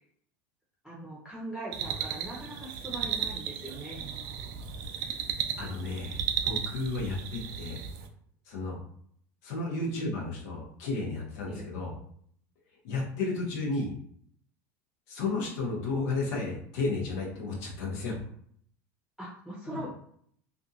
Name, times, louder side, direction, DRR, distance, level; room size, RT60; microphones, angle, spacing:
voice 1, 0.8-4.0 11.5-11.7 19.2-19.9, right 1 dB, ahead, -6 dB, 0.7 m, -41 dB
sound 1, 1.7-8.1, right 8 dB, 55° right, 0.4 m, -35 dB
voice 2, 5.6-7.8 8.5-8.8 9.4-11.9 12.8-13.9 15.1-18.2 19.6-19.8, left 3 dB, 75° left, -2 dB, 0.9 m, -33 dB
2.6 x 2.4 x 2.7 m, 0.64 s
supercardioid pair, 110°, 9 cm